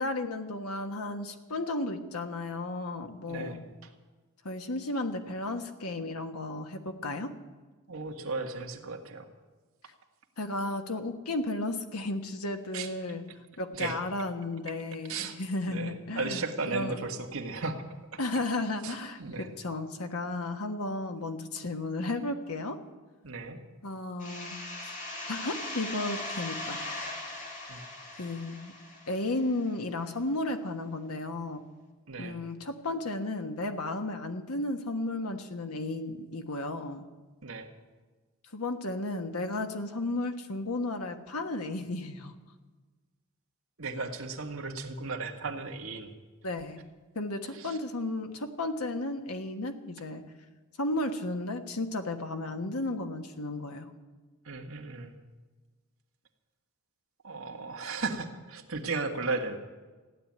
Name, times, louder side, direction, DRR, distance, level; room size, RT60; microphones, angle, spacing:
voice 1, 0.0-3.6 4.4-7.3 10.4-13.2 13.6-17.0 18.2-22.8 23.8-24.5 25.3-27.1 28.2-28.7 29.1-31.6 32.2-37.1 38.5-42.3 46.4-46.8 47.1-50.2 50.8-53.9, left 2 dB, 90° left, 6 dB, 1.4 m, -34 dB
voice 2, 3.3-3.7 7.9-9.3 12.7-12.9 13.7-14.0 15.1-15.4 15.7-17.8 18.1-18.2 18.8-18.9 19.2-19.5 23.2-23.6 27.7-27.8 32.1-32.4 37.4-37.7 43.8-46.1 47.5-47.8 54.4-55.2 57.2-59.6, right 3 dB, 70° right, 2 dB, 1.7 m, -35 dB
sound 1, 24.2-29.7, left 2 dB, 35° left, 2.3 m, -39 dB
15.0 x 10.5 x 8.7 m, 1.3 s
head